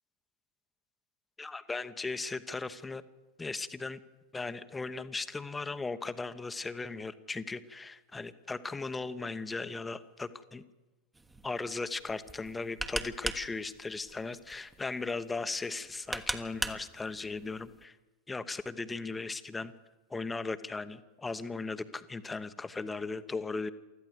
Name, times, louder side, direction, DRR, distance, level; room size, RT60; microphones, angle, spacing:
voice 1, 1.4-3.0 3.4-4.0 4.3-10.6 11.4-18.0 18.3-19.7 20.1-23.7, left 3 dB, 10° left, 11 dB, 1.1 m, -37 dB
sound 1, 11.1-17.8, right 2 dB, 10° right, 1.3 m, -40 dB
24.0 x 14.5 x 8.1 m, 1.1 s
figure-of-eight pair, 90°, 0 cm